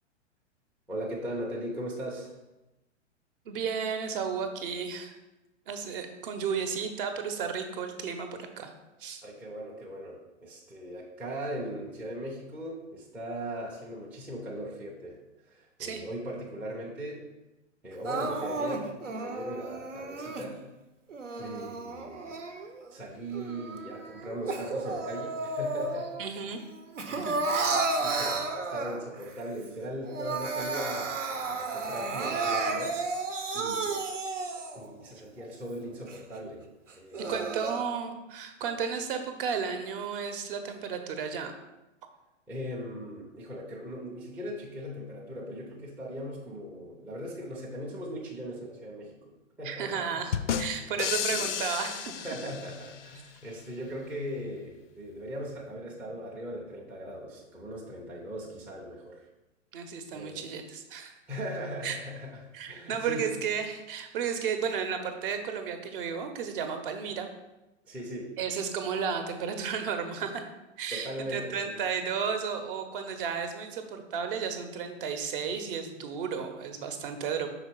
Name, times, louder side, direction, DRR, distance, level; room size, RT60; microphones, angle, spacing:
voice 1, 0.9-2.3 9.2-15.2 15.4-17.2 17.8-20.6 21.4-22.6 22.9-26.1 27.1-33.0 33.5-33.9 34.7-36.6 37.0-37.3 42.5-51.5 52.2-59.3 60.1-60.4 61.3-62.4 62.7-63.2 67.8-68.3 70.9-71.8, equal, 5° right, -5 dB, 0.4 m, -39 dB
voice 2, 3.4-5.1 5.7-8.7 9.0-9.2 15.8-16.0 26.2-26.6 27.1-27.7 37.3-41.5 49.6-52.2 59.7-61.1 61.8-62.0 62.5-67.3 68.4-70.4 70.8-77.5, right 6 dB, 45° right, 6 dB, 0.8 m, -33 dB
Crying sobbing, 18.0-20.5 21.1-22.9 23.3-26.3 26.6-29.2 29.7-29.8 30.0-34.9 35.4-35.5 36.1-36.2 36.9-37.8, right 3 dB, 80° right, 0.9 m, -32 dB
sound 1, 50.3-53.1, left 8 dB, 70° left, 0.5 m, -32 dB
5.6 x 3.9 x 4.5 m, 1.0 s
figure-of-eight pair, 110°, 37 cm